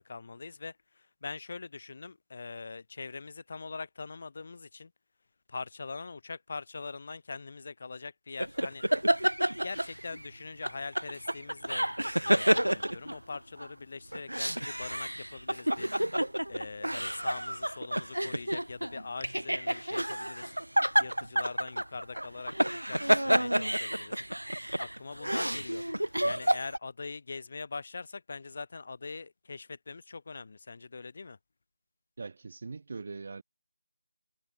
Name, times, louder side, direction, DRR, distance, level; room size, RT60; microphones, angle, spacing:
voice 1, 0.0-4.9 5.5-8.8 9.6-15.9 16.5-20.5 21.0-22.5 22.9-24.2 24.8-25.8 26.2-31.4, left 4 dB, 45° left, 5.7 m, -42 dB
sound 1, 8.4-10.3 10.6-13.7 14.1-26.8, right 1 dB, 85° right, 1.5 m, -29 dB
voice 2, 32.2-33.4, right 4 dB, 45° right, 1.5 m, -41 dB
figure-of-eight pair, 160°, 0 cm